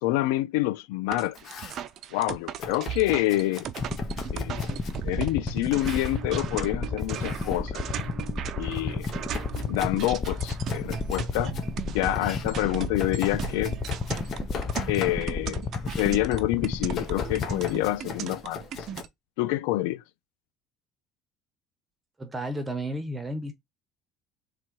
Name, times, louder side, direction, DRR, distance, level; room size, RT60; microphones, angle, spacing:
voice 1, 0.0-1.4 2.1-3.7 4.3-4.6 5.0-7.8 8.6-9.1 9.7-11.5 11.9-13.8 14.9-15.7 16.0-18.6 19.4-20.0, left 16 dB, 90° left, 0.3 m, -27 dB
Domestic sounds home sounds, 1.1-1.9 2.6-5.0 5.7-6.2 7.0-7.6 8.0-11.7 12.1-15.5 15.7-16.2 16.9-19.0, left 5 dB, 50° left, 1.3 m, -40 dB
sound 1, 1.1-19.1, right 10 dB, 55° right, 0.6 m, -37 dB
sound 2, 3.8-18.2, left 4 dB, 25° left, 0.5 m, -32 dB
voice 2, 22.2-23.5, right 1 dB, 15° right, 1.0 m, -32 dB
3.7 x 3.1 x 4.5 m
supercardioid pair, 110°, 0 cm